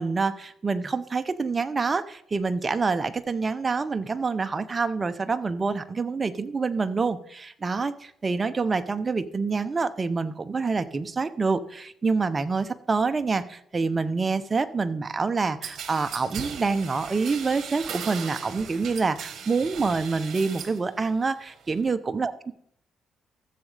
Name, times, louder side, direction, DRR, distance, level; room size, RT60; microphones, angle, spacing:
voice 1, 0.0-22.3, right 4 dB, 30° right, 11 dB, 0.6 m, -27 dB
sound 1, 15.6-20.8 21.2-21.8, right 7 dB, 65° right, 1.2 m, -38 dB
14.5 x 7.2 x 3.3 m, 0.70 s
cardioid pair, 90°, 0 cm